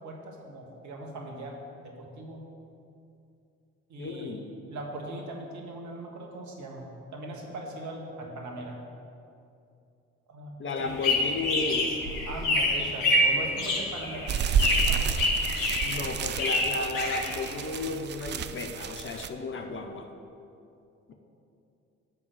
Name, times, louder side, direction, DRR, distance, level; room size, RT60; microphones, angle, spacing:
voice 1, 0.0-2.4 3.9-8.8 10.3-11.0 12.3-14.3 14.7-15.2, right 1 dB, 50° right, 0 dB, 1.6 m, -40 dB
voice 2, 4.0-4.5 10.6-12.0 15.8-20.1 21.1-21.2, left 3 dB, 30° left, 5 dB, 0.8 m, -33 dB
sound 1, 10.8-17.8, left 1 dB, 65° left, 1.4 m, -27 dB
sound 2, 14.3-19.3, right 7 dB, 30° right, 0.4 m, -31 dB
7.7 x 5.4 x 6.7 m, 2.6 s
figure-of-eight pair, 50°, 38 cm